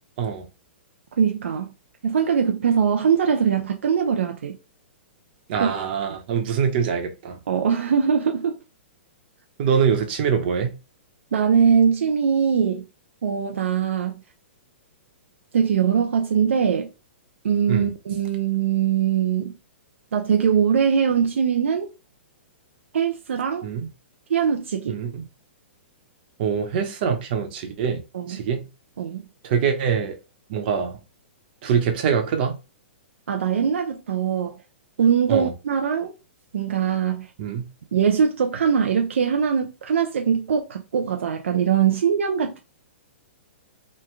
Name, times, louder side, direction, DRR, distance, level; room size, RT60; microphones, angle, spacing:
voice 1, 1.2-1.7 2.0-4.6 5.6-5.7 7.5-8.6 11.3-12.8 13.2-14.2 15.5-16.9 17.4-19.5 20.1-21.9 22.9-23.7 24.3-25.0 28.1-28.4 29.0-29.2 33.3-34.6 35.0-36.1 36.5-37.3 37.9-42.6, right 7 dB, 80° right, 0.4 m, -21 dB
voice 2, 5.5-7.4 9.6-10.7 17.7-17.9 23.6-23.9 24.9-25.2 26.4-28.0 28.3-28.7 29.4-30.2 30.5-31.0 31.6-32.5 35.3-35.5 37.4-37.6, right 7 dB, 50° right, 0.8 m, -24 dB
3.1 x 2.2 x 3.3 m
hypercardioid pair, 130°, 7 cm